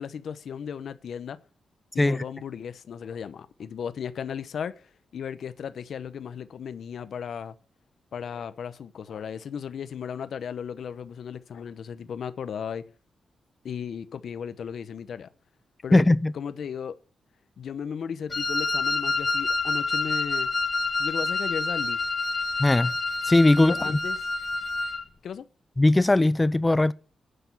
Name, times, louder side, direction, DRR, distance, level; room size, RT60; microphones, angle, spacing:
voice 1, 0.0-1.4 1.9-4.7 5.1-7.5 8.1-12.8 13.6-15.3 15.8-16.0 16.3-17.0 17.6-20.5 21.0-22.0 23.6-24.2 25.2-25.5, left 7 dB, 60° left, 0.9 m, -35 dB
voice 2, 15.9-16.3 22.6-22.9 23.2-23.7 25.8-26.9, left 2 dB, 15° left, 0.4 m, -19 dB
Wind instrument woodwind instrument, 18.3-25.0, left 3 dB, 35° left, 1.0 m, -28 dB
10.0 x 6.8 x 7.0 m
wide cardioid pair, 150°, 0 cm